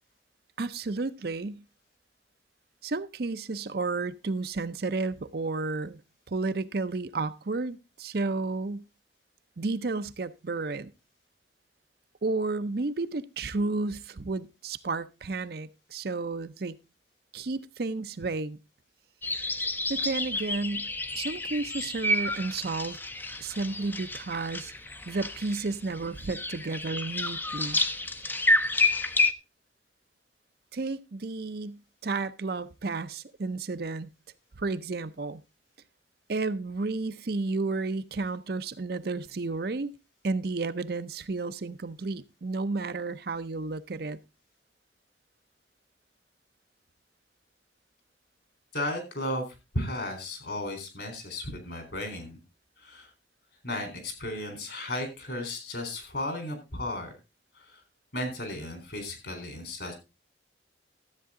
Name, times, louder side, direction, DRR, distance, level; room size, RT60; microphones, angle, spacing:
voice 1, 0.6-1.6 2.8-6.0 6.3-8.8 9.6-10.9 12.2-16.7 17.3-18.6 19.9-20.9 21.1-23.0 23.4-24.7 25.1-27.8 30.7-34.1 34.6-35.4 36.3-39.9 40.2-44.2, right 3 dB, 55° right, 0.6 m, -32 dB
sound 1, 19.2-29.3, left 2 dB, 10° left, 0.5 m, -30 dB
voice 2, 48.7-49.5 49.7-52.4 52.8-53.1 53.6-57.1 57.6-57.8 58.1-59.9, left 1 dB, 65° left, 3.7 m, -34 dB
13.0 x 8.2 x 3.7 m
head